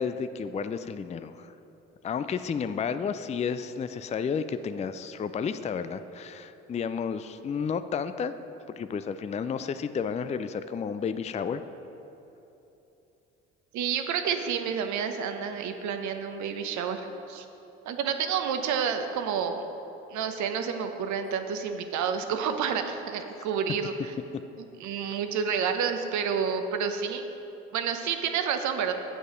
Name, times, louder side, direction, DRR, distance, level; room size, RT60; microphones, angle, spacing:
voice 1, 0.0-1.5 2.0-8.3 8.8-11.6, left 6 dB, 20° left, 11 dB, 0.4 m, -31 dB
voice 2, 13.7-17.4 17.9-19.6 20.1-24.1 24.8-27.2 27.7-28.9, right 7 dB, 60° right, 7 dB, 0.9 m, -29 dB
9.2 x 8.0 x 5.1 m, 3.0 s
hypercardioid pair, 50°, 32 cm